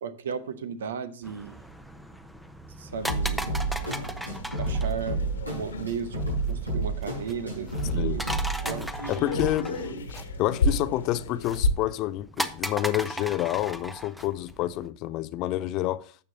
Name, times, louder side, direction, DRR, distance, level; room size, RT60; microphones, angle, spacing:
voice 1, 0.0-1.6 2.8-3.5 4.6-5.2 5.5-6.2 6.5-8.3 8.6-8.9, right 6 dB, 60° right, 1.0 m, -35 dB
sound 1, 1.2-14.9, equal, ahead, 0.9 m, -38 dB
sound 2, 2.9-11.7, left 3 dB, 70° left, 1.4 m, -34 dB
sound 3, 3.1-9.5, right 2 dB, 85° right, 4.8 m, -31 dB
voice 2, 9.1-9.7 10.4-16.2, left 15 dB, 40° left, 0.5 m, -28 dB
12.5 x 8.0 x 2.8 m
figure-of-eight pair, 90°, 0 cm